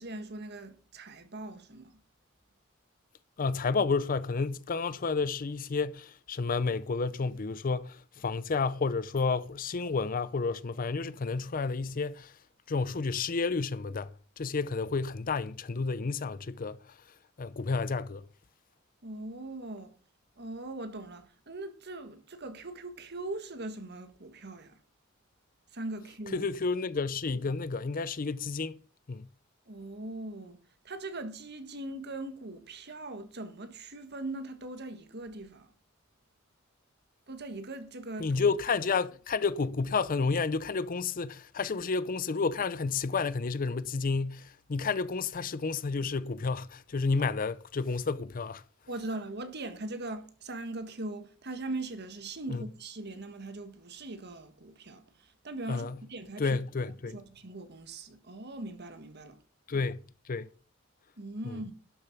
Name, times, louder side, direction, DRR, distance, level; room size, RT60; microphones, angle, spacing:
voice 1, 0.0-1.9 19.0-19.9 20.4-24.8 25.7-26.4 29.7-30.6 30.8-35.7 37.3-38.3 47.2-47.3 48.9-56.6 57.1-59.4 61.2-61.7, right 2 dB, 55° right, 1.6 m, -40 dB
voice 2, 3.4-12.3 12.7-14.1 14.4-16.8 17.4-18.2 26.3-28.8 29.1-29.3 38.2-48.6 52.5-52.6 55.7-56.0 56.4-57.2 59.7-60.0 60.3-60.5 61.4-61.6, left 4 dB, 45° left, 0.6 m, -31 dB
12.0 x 6.8 x 5.9 m
head